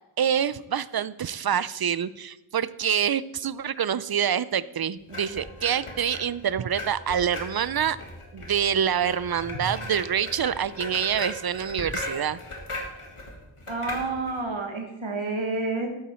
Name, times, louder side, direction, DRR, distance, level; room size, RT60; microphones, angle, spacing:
voice 1, 0.2-8.0 8.3-12.4, right 8 dB, 50° right, 18 dB, 0.5 m, -26 dB
sound 1, 5.1-14.4, left 1 dB, 85° left, 1.9 m, -38 dB
voice 2, 13.7-15.9, right 3 dB, 70° right, 2 dB, 1.5 m, -29 dB
12.5 x 8.5 x 4.4 m, 0.97 s
wide cardioid pair, 55°, 50 cm